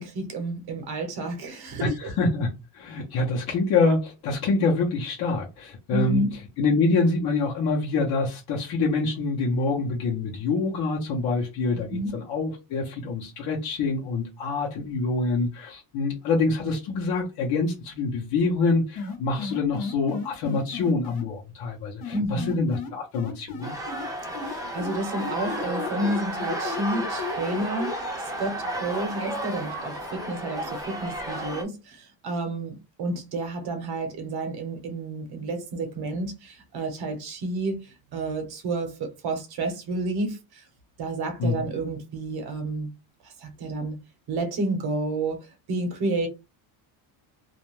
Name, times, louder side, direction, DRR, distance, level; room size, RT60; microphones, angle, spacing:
voice 1, 0.0-2.1 5.9-6.3 11.9-12.1 22.1-22.5 24.4-40.6 41.0-42.9 43.4-44.0 44.3-46.3, right 2 dB, 55° right, 0.9 m, -30 dB
voice 2, 1.8-6.2 6.6-23.7 41.4-41.7, left 3 dB, 55° left, 0.8 m, -26 dB
sound 1, 19.0-21.2 22.0-24.1 24.3-27.9, left 5 dB, 85° left, 1.0 m, -34 dB
sound 2, 23.6-31.6, right 1 dB, 10° right, 0.6 m, -33 dB
2.4 x 2.1 x 3.1 m
cardioid pair, 145°, 46 cm